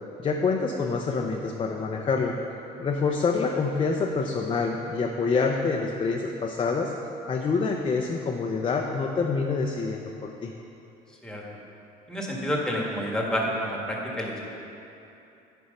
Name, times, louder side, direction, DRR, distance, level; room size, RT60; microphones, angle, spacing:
voice 1, 0.2-2.4 2.8-6.9 7.3-10.5, left 4 dB, 30° left, 1 dB, 0.5 m, -26 dB
voice 2, 12.1-14.5, equal, 5° left, -2 dB, 1.4 m, -29 dB
9.7 x 4.6 x 5.2 m, 2.9 s
cardioid pair, 110°, 17 cm